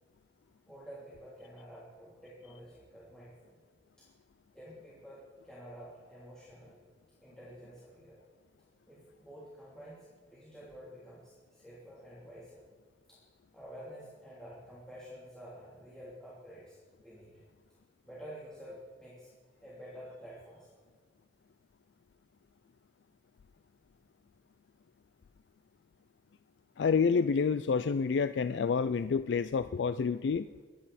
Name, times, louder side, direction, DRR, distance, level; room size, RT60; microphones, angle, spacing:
voice 1, 0.7-3.6 4.0-4.1 4.5-6.8 7.2-8.2 8.9-12.6 13.1-13.2 13.5-17.4 18.0-19.3 19.6-20.8, equal, 5° left, -9 dB, 3.1 m, -50 dB
voice 2, 26.8-30.5, left 5 dB, 75° left, 13 dB, 0.4 m, -28 dB
23.0 x 10.5 x 4.2 m, 1.5 s
head